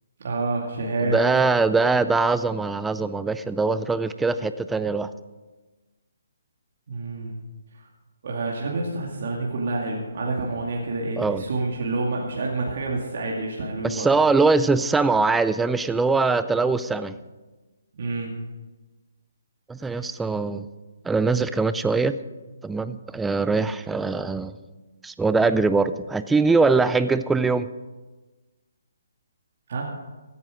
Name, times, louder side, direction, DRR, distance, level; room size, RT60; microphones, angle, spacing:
voice 1, 0.2-1.2 6.9-7.3 8.2-14.1 18.0-18.3 19.9-20.1 29.7-29.9, right 2 dB, 55° right, -2 dB, 2.3 m, -28 dB
voice 2, 1.0-5.1 11.2-11.4 13.8-17.1 19.7-20.7 21.0-22.1 22.6-24.5 25.0-27.7, right 4 dB, 5° right, 13 dB, 0.4 m, -22 dB
16.0 x 9.7 x 5.1 m, 1.2 s
hypercardioid pair, 155°, 0 cm